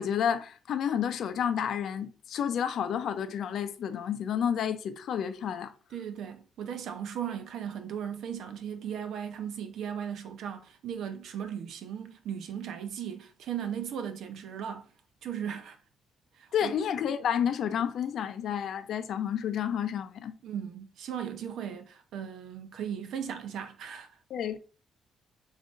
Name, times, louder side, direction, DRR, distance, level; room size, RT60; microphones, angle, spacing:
voice 1, 0.0-5.7 16.5-20.3 24.3-24.6, left 8 dB, 65° left, 0.5 m, -30 dB
voice 2, 5.9-14.9 15.2-15.8 16.3-16.8 20.4-24.2, right 8 dB, 75° right, 0.7 m, -37 dB
7.2 x 2.7 x 2.5 m
cardioid pair, 100°, 0 cm